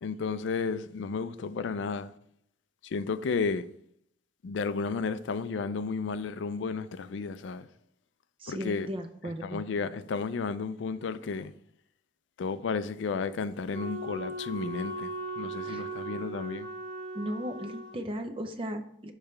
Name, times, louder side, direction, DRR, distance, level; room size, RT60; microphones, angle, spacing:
voice 1, 0.0-2.1 2.8-3.7 4.4-7.7 8.5-8.9 9.4-11.5 12.4-16.7, left 4 dB, 70° left, 0.4 m, -33 dB
voice 2, 8.4-9.6 15.6-15.8 17.1-19.1, equal, 30° right, 0.6 m, -36 dB
Wind instrument woodwind instrument, 13.7-18.0, right 2 dB, 60° right, 1.5 m, -38 dB
6.7 x 3.2 x 5.7 m
head